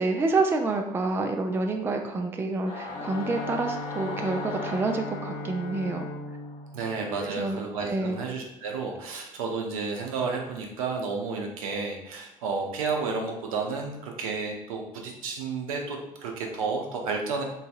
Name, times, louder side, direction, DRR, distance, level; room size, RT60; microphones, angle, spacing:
voice 1, 0.0-6.1 7.2-8.2, right 3 dB, 15° right, 4 dB, 0.3 m, -28 dB
Singing / Musical instrument, 2.6-7.3, left 3 dB, 75° left, 1.1 m, -39 dB
Bowed string instrument, 2.9-8.1, left 2 dB, 55° left, 0.7 m, -39 dB
voice 2, 6.7-17.4, right 4 dB, 70° right, 1 dB, 0.6 m, -31 dB
3.8 x 2.7 x 2.3 m, 0.84 s
figure-of-eight pair, 55°, 18 cm